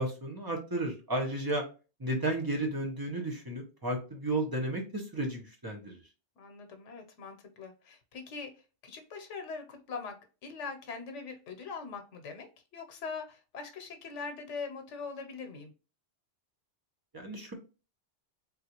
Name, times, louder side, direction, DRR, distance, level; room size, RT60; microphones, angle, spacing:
voice 1, 0.0-1.6 2.0-5.9 17.1-17.5, right 1 dB, 25° right, 2 dB, 0.6 m, -33 dB
voice 2, 6.4-8.5 8.8-10.2 10.4-15.7, left 4 dB, 85° left, 6 dB, 1.0 m, -42 dB
3.6 x 2.4 x 2.8 m, 0.33 s
omnidirectional pair, 1.2 m